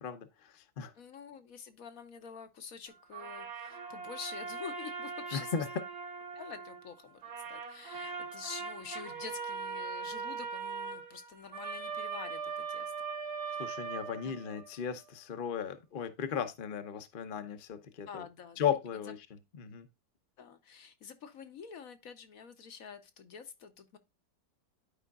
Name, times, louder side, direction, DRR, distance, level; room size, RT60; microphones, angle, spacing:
voice 1, 0.0-0.9 5.3-5.7 8.0-8.2 13.6-18.3 18.6-19.9, left 7 dB, 40° left, 0.8 m, -36 dB
voice 2, 0.9-5.5 6.3-7.2 7.5-12.9 13.5-13.6 14.2-14.3 18.1-18.6 20.4-24.0, left 6 dB, 60° left, 1.2 m, -47 dB
sound 1, 3.1-6.9 7.2-14.8, right 5 dB, 65° right, 2.1 m, -40 dB
12.0 x 5.0 x 2.3 m
omnidirectional pair, 1.8 m